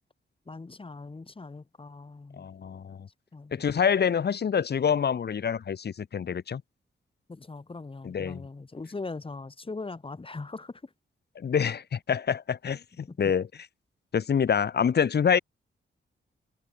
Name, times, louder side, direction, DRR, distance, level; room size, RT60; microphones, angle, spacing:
voice 1, 0.5-2.5 3.3-3.7 7.3-10.9 11.5-11.6 13.1-13.2, left 3 dB, 25° left, 3.4 m, -40 dB
voice 2, 2.4-3.1 3.5-6.6 8.0-8.4 11.3-13.5 14.1-15.4, left 7 dB, 55° left, 1.5 m, -26 dB
wide cardioid pair, 115°, 20 cm